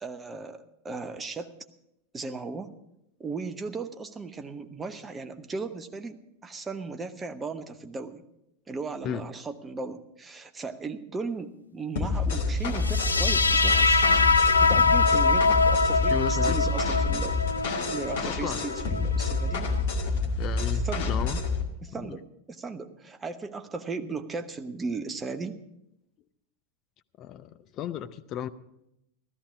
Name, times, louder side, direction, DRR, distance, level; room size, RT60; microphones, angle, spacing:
voice 1, 0.0-1.6 2.1-2.7 3.2-6.2 6.4-8.2 8.7-14.1 14.4-17.4 17.9-19.7 20.8-21.1 21.8-22.2 22.5-25.6, right 4 dB, 15° right, 8 dB, 0.9 m, -36 dB
sound 1, 12.0-21.6, left 3 dB, 55° left, 2.0 m, -28 dB
sound 2, 12.8-19.8, left 4 dB, 75° left, 0.5 m, -24 dB
voice 2, 16.1-16.7 18.2-18.6 20.4-21.4 21.9-22.2 27.2-28.5, left 10 dB, 35° left, 11 dB, 0.6 m, -34 dB
15.0 x 13.5 x 4.8 m, 0.83 s
figure-of-eight pair, 90°, 0 cm